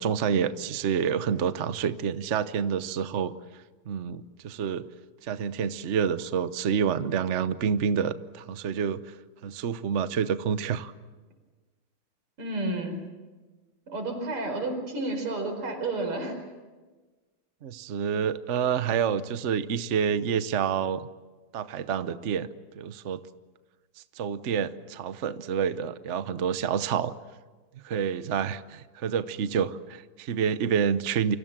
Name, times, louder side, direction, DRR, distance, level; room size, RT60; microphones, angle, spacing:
voice 1, 0.0-3.3 3.9-4.9 5.2-9.0 9.4-10.9 17.6-21.1 21.5-22.5 22.7-23.2 24.2-27.1 27.8-31.4, right 7 dB, 50° right, 12 dB, 0.8 m, -28 dB
voice 2, 12.4-13.0 13.9-16.4, right 2 dB, 85° right, 5 dB, 5.7 m, -31 dB
29.0 x 25.0 x 7.4 m, 1.3 s
omnidirectional pair, 2.4 m